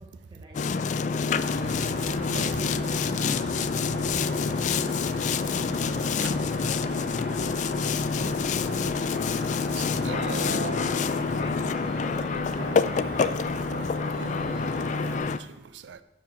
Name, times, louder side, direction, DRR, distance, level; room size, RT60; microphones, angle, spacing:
voice 1, 0.0-0.9 2.3-12.0 12.3-13.2, right 1 dB, 25° right, 0.8 m, -47 dB
Boat Water vehicle, 0.5-15.4, left 5 dB, 45° left, 0.3 m, -27 dB
Cricket, 1.3-15.2, right 1 dB, 60° right, 1.7 m, -39 dB
voice 2, 2.2-2.6 6.2-6.3 9.8-10.8 12.6-13.4 13.7-13.9 14.2-16.0, right 6 dB, 90° right, 0.4 m, -40 dB
13.0 x 5.0 x 4.2 m
head